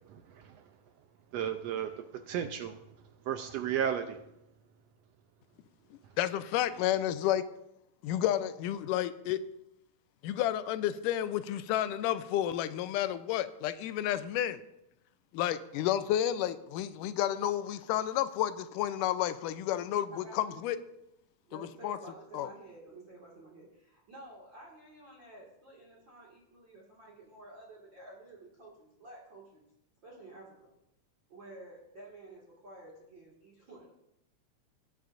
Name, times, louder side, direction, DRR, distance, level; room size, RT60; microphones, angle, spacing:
voice 1, 0.1-0.7 1.3-2.8 3.2-4.2, right 9 dB, 85° right, 7 dB, 1.5 m, -34 dB
voice 2, 6.2-7.4 8.0-9.4 10.2-14.6 15.3-20.8 21.5-22.0 22.3-22.5, left 12 dB, 90° left, 11 dB, 2.2 m, -31 dB
voice 3, 20.1-20.6 21.5-29.6 30.0-30.7 31.3-33.9, right 2 dB, 40° right, -4 dB, 2.4 m, -51 dB
20.0 x 9.4 x 2.6 m, 0.83 s
omnidirectional pair, 3.6 m